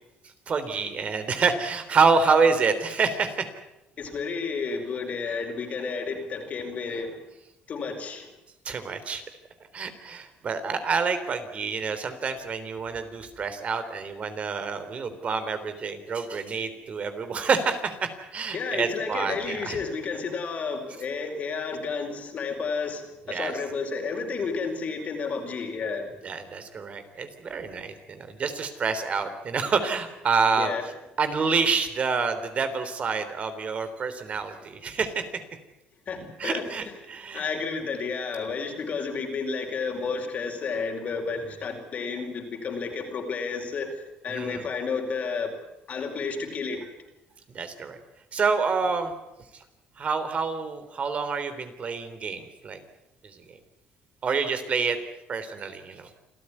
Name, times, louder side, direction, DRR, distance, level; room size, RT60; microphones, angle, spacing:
voice 1, 0.5-3.5 8.7-9.2 9.7-19.8 23.3-23.6 26.2-30.9 31.2-35.2 36.4-37.5 44.3-44.6 47.5-48.0 48.3-49.1 49.5-49.6 50.0-52.8 53.3-53.6 54.2-55.0 55.3-56.1, right 5 dB, 40° right, 9 dB, 3.5 m, -27 dB
voice 2, 4.0-7.2 7.7-8.3 18.5-23.0 23.3-26.1 30.6-30.8 36.1-36.6 37.3-44.0 44.2-45.5 45.9-46.8, left 5 dB, 45° left, 4 dB, 4.8 m, -31 dB
28.0 x 14.0 x 9.8 m, 0.96 s
cardioid pair, 110°, 3 cm